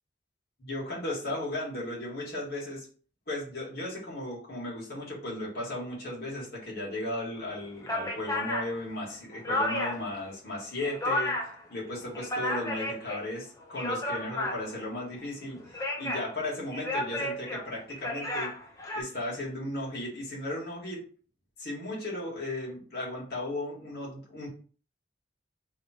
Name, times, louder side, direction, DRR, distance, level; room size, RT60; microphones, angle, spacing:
voice 1, 0.6-2.9 3.3-11.3 11.7-18.5 19.0-21.0 21.6-24.5, left 1 dB, 55° left, -4 dB, 2.2 m, -36 dB
sound 1, 7.4-7.5 7.8-10.1 10.5-11.6 12.0-13.2 13.6-14.9 15.6-16.3 16.7-19.0, left 1 dB, 15° left, 0.8 m, -32 dB
3.6 x 3.2 x 4.4 m, 0.41 s
head